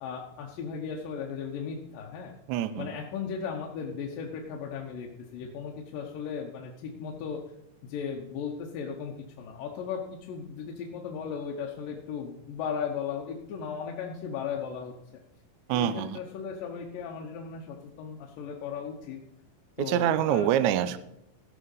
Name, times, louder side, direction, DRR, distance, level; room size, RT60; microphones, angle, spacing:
voice 1, 0.0-2.3 2.8-7.4 7.9-14.9 15.7-19.2 19.8-20.5, left 6 dB, 80° left, 0 dB, 2.7 m, -36 dB
voice 2, 2.5-2.9 15.7-16.2 19.8-21.0, right 11 dB, 85° right, 13 dB, 1.7 m, -25 dB
15.5 x 5.8 x 5.5 m, 0.82 s
omnidirectional pair, 4.0 m